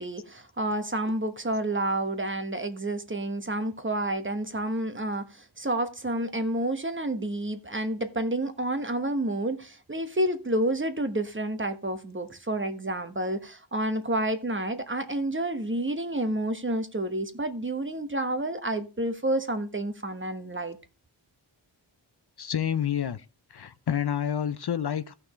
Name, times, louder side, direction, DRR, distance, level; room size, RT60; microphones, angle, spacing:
voice 1, 0.0-20.8, right 1 dB, 25° right, 1.2 m, -29 dB
voice 2, 22.4-23.2 23.5-25.1, left 9 dB, 55° left, 0.6 m, -28 dB
16.0 x 5.8 x 3.1 m
wide cardioid pair, 70°, 46 cm